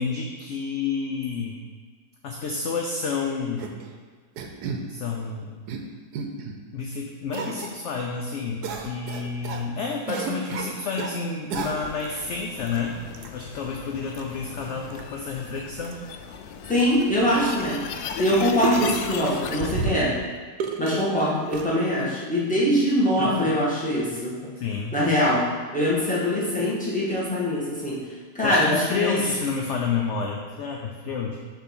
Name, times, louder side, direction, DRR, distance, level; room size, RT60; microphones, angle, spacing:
voice 1, 0.0-1.6 2.2-3.8 4.9-5.6 6.7-12.9 13.3-16.0 23.2-23.5 24.6-24.9 28.4-31.4, left 5 dB, 65° left, 1 dB, 0.7 m, -30 dB
sound 1, 3.6-3.9 4.4-4.8 5.4-5.8 6.1-6.5 7.3-7.7 8.6-9.6 10.1-11.2 11.5-12.1 12.7-12.8 13.1-13.3 14.1-14.2 14.9-15.0 15.3-15.4 15.8-15.9 16.5-16.6 16.8-16.9 17.7-17.8 18.6-19.1 19.6-20.2 20.6-21.1 21.5-21.6, right 5 dB, 75° right, 1.2 m, -31 dB
sound 2, 11.8-19.8, left 6 dB, 90° left, 1.2 m, -37 dB
voice 2, 16.7-17.8 18.2-20.1 20.8-24.3 24.9-25.4 25.7-28.0 28.3-29.2, equal, 5° left, -7 dB, 1.5 m, -23 dB
6.8 x 3.2 x 6.0 m, 1.5 s
omnidirectional pair, 1.7 m